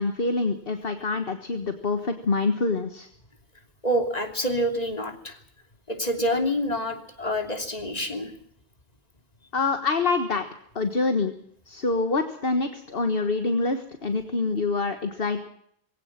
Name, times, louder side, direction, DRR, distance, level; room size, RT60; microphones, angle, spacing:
voice 1, 0.0-3.1 9.5-10.4 10.7-11.3 11.7-15.4, left 3 dB, 60° left, 7 dB, 1.7 m, -26 dB
voice 2, 3.8-5.4 5.9-8.3, equal, 35° left, 5 dB, 3.2 m, -27 dB
22.0 x 17.0 x 7.5 m, 0.69 s
omnidirectional pair, 1.1 m